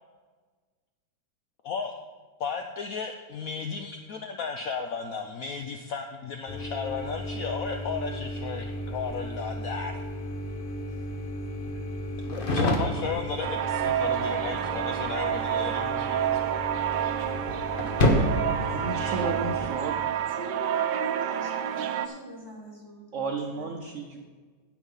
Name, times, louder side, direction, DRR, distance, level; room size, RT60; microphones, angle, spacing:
voice 1, 2.4-10.0 12.1-16.4, left 5 dB, 65° left, 5 dB, 0.9 m, -34 dB
sound 1, 6.5-19.7, equal, 35° left, 1.1 m, -31 dB
sound 2, 13.4-22.1, right 10 dB, 80° right, 1.3 m, -29 dB
voice 2, 18.6-19.9 23.1-24.2, right 4 dB, 55° right, 3 dB, 1.0 m, -33 dB
voice 3, 20.4-23.8, right 1 dB, 10° left, -2 dB, 2.6 m, -41 dB
10.5 x 7.4 x 5.5 m, 1.4 s
omnidirectional pair, 1.9 m